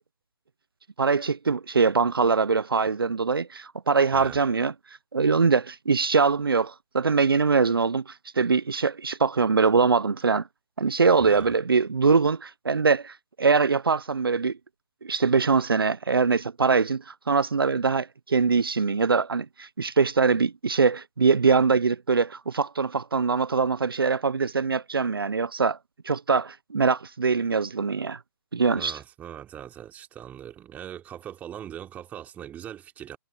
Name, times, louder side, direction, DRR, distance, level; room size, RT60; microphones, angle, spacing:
voice 1, 1.0-4.7 5.1-10.4 10.8-14.6 15.0-25.8 26.0-28.2 28.5-29.0, right 5 dB, 80° right, 0.8 m, -23 dB
voice 2, 11.2-11.5 28.8-33.2, right 10 dB, 15° right, 3.6 m, -40 dB
figure-of-eight pair, 145°, 12 cm